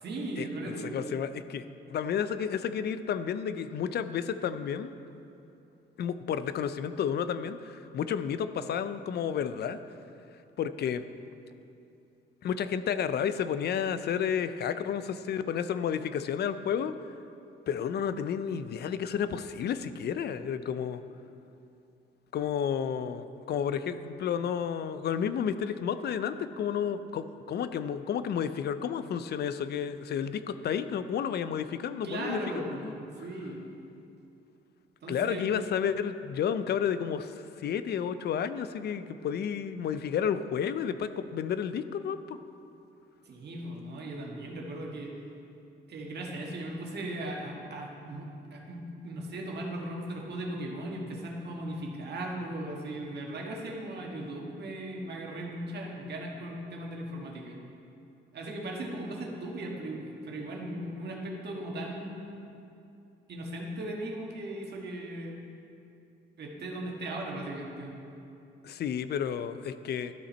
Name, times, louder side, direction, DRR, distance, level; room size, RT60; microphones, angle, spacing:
voice 1, 0.0-1.2 32.0-33.6 35.0-35.4 43.2-45.1 45.9-57.6 58.3-62.5 63.3-65.5 66.4-67.9, right 1 dB, 55° right, -1 dB, 1.6 m, -38 dB
voice 2, 0.8-1.6 1.9-4.9 6.0-9.8 10.6-11.0 12.4-16.9 17.7-21.0 22.3-33.0 35.1-42.4 68.6-70.1, left 8 dB, 55° left, 12 dB, 0.5 m, -31 dB
12.5 x 5.6 x 4.3 m, 2.8 s
cardioid pair, 90°, 20 cm